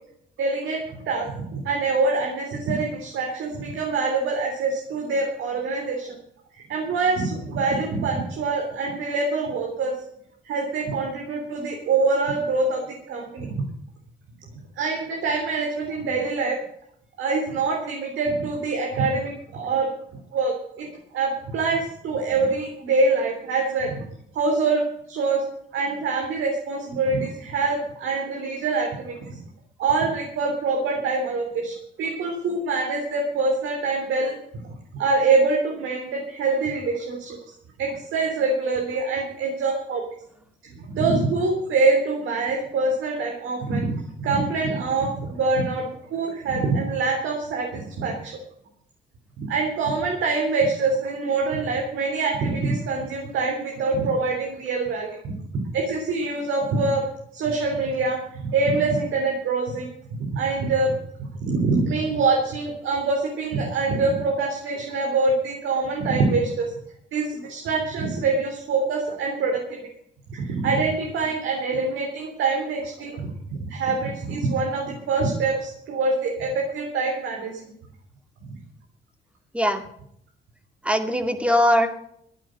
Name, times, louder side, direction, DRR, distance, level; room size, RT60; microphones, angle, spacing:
voice 1, 0.4-6.2 6.5-9.9 10.4-12.8 13.1-13.6 14.8-16.6 17.2-19.9 20.3-20.9 21.1-24.1 24.3-24.8 25.1-25.4 25.7-29.4 29.8-37.4 37.8-40.0 40.9-45.8 46.1-48.4 49.4-55.4 55.7-57.0 57.3-59.9 60.2-66.7 67.1-69.6 70.3-77.6, right 3 dB, 80° right, 0 dB, 3.6 m, -25 dB
voice 2, 80.8-81.9, equal, 5° right, 6 dB, 2.4 m, -20 dB
14.5 x 10.0 x 6.5 m, 0.69 s
cardioid pair, 90°, 20 cm